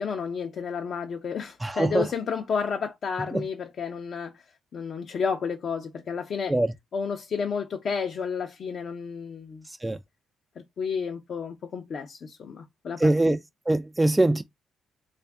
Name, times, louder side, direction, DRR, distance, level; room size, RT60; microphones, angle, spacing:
voice 1, 0.0-4.4 4.7-6.5 6.9-9.6 10.8-13.4, left 6 dB, 55° left, 0.6 m, -31 dB
voice 2, 1.6-2.1 3.3-3.4 6.5-6.7 9.8-10.0 13.0-13.4 13.7-14.4, right 2 dB, 10° right, 0.3 m, -22 dB
3.4 x 2.5 x 3.4 m
cardioid pair, 90°, 0 cm